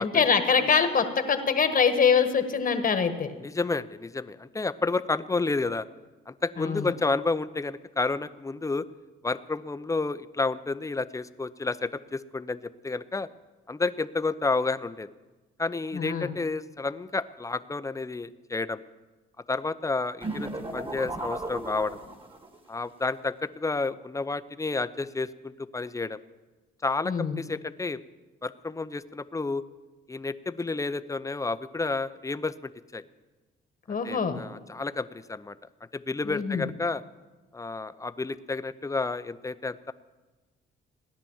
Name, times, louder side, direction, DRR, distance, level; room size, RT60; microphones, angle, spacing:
voice 1, 0.0-3.3 6.6-6.9 15.9-16.3 27.0-27.4 33.9-34.4 36.2-36.6, left 6 dB, 45° left, 8 dB, 1.4 m, -24 dB
voice 2, 3.4-5.8 6.3-8.8 9.2-13.3 13.7-15.1 15.6-18.8 19.5-22.0 22.7-26.2 26.8-28.0 28.4-29.6 30.1-33.0 33.9-35.6 35.9-37.0 37.5-39.9, left 3 dB, 15° left, 13 dB, 0.6 m, -30 dB
sound 1, 20.2-22.6, right 2 dB, 25° right, 1.9 m, -35 dB
17.0 x 10.5 x 7.2 m, 1.2 s
cardioid pair, 90°, 20 cm